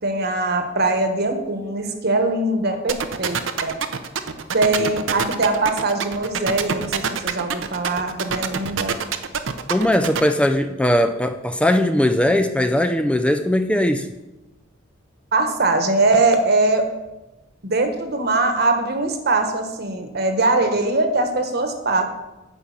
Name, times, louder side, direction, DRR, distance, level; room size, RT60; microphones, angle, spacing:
voice 1, 0.0-3.8 4.5-8.9 15.3-16.9 17.6-22.0, right 2 dB, 55° right, 6 dB, 1.3 m, -21 dB
sound 1, 2.9-10.2, right 6 dB, 75° right, 0.7 m, -24 dB
voice 2, 9.7-14.1, left 1 dB, 5° left, 8 dB, 0.4 m, -19 dB
9.3 x 5.2 x 7.2 m, 1.0 s
head